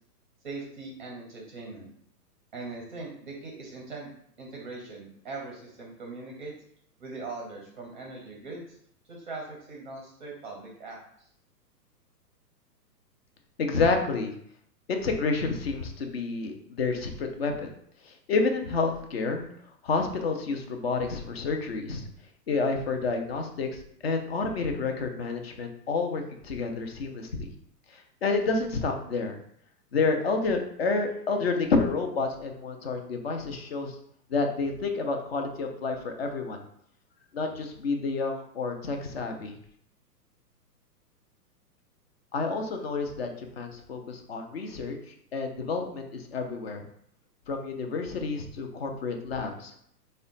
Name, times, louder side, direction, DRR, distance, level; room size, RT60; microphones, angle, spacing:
voice 1, 0.4-1.9 2.5-4.1 4.4-6.5 7.0-8.8 9.1-11.3, right 3 dB, 30° right, -1 dB, 0.5 m, -40 dB
voice 2, 13.6-14.3 14.9-17.7 18.0-19.4 19.8-22.0 22.5-27.5 27.9-29.3 29.9-34.0 34.3-36.6 37.3-39.6 42.3-45.0 45.3-46.8 47.5-49.7, left 4 dB, 40° left, 4 dB, 0.4 m, -29 dB
3.5 x 2.2 x 3.8 m, 0.68 s
hypercardioid pair, 150°, 49 cm